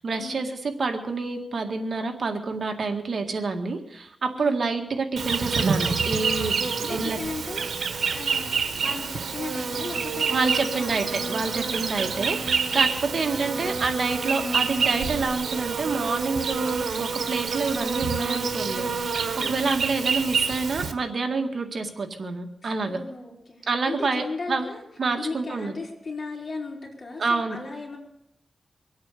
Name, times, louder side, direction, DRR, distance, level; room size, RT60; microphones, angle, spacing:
voice 1, 0.0-7.2 10.3-23.0 23.7-24.6 25.0-25.7 27.2-27.6, right 4 dB, 60° right, 5 dB, 1.9 m, -28 dB
Insect, 5.2-20.9, right 5 dB, 85° right, 1.4 m, -27 dB
voice 2, 6.8-7.8 8.1-11.0 13.2-13.4 19.4-19.8 22.6-24.8 25.2-28.0, left 3 dB, 50° left, -1 dB, 4.6 m, -36 dB
24.0 x 8.7 x 6.7 m, 0.80 s
wide cardioid pair, 110°, 0 cm